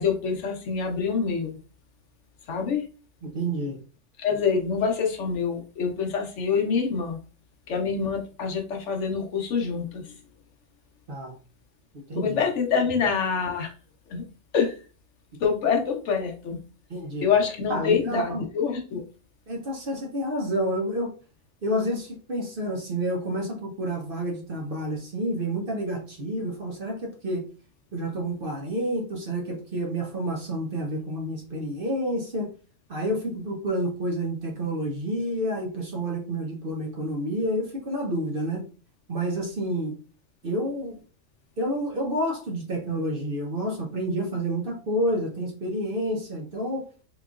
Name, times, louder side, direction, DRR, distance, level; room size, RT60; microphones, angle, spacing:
voice 1, 0.0-1.6 2.5-2.8 4.2-7.2 7.7-10.1 12.1-13.7 14.1-14.2 14.5-14.8 15.4-16.6 17.2-19.0, left 6 dB, 70° left, 2 dB, 1.0 m, -26 dB
voice 2, 3.2-3.8 11.1-11.4 12.1-12.4 16.9-17.3 17.7-18.5 19.5-21.1 21.6-27.5 27.9-32.5 32.9-38.6 39.1-40.0 40.4-41.0 41.6-46.9, right 1 dB, 50° right, 1 dB, 0.8 m, -29 dB
3.7 x 2.9 x 2.3 m, 0.37 s
omnidirectional pair, 1.3 m